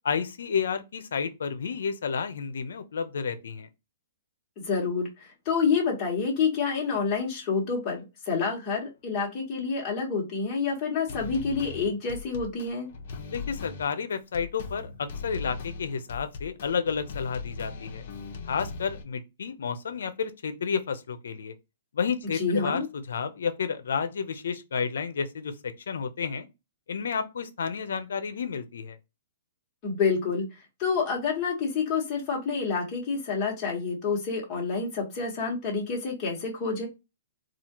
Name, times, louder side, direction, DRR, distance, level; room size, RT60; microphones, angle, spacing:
voice 1, 0.0-3.7 13.3-18.0 18.5-21.5 21.9-26.5 26.9-29.0, left 6 dB, 80° left, 0.7 m, -31 dB
voice 2, 4.6-12.9 22.3-22.9 29.8-30.4 30.8-36.9, left 5 dB, 25° left, 1.5 m, -28 dB
sound 1, 11.1-19.0, left 4 dB, 50° left, 0.9 m, -39 dB
4.1 x 2.5 x 2.9 m
hypercardioid pair, 165°, 0 cm